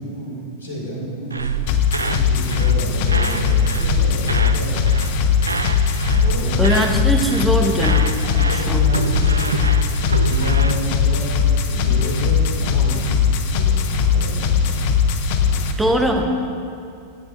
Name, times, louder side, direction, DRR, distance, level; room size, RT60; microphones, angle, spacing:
voice 1, 0.0-1.5 2.0-5.2 6.1-6.6 8.2-9.6 10.0-11.3 11.6-14.8 15.3-15.6, equal, 70° left, -4 dB, 2.4 m, -30 dB
sound 1, 1.3-2.8 3.1-4.6 4.8-5.1 5.4-7.0 7.2-7.5 7.8-10.7, right 4 dB, 80° right, 0.4 m, -26 dB
sound 2, 1.7-15.7, left 6 dB, 50° left, 0.7 m, -19 dB
voice 2, 6.6-8.2 8.5-8.9 15.8-16.5, equal, 5° right, 3 dB, 0.9 m, -21 dB
15.5 x 8.5 x 2.6 m, 2.5 s
figure-of-eight pair, 90°, 0 cm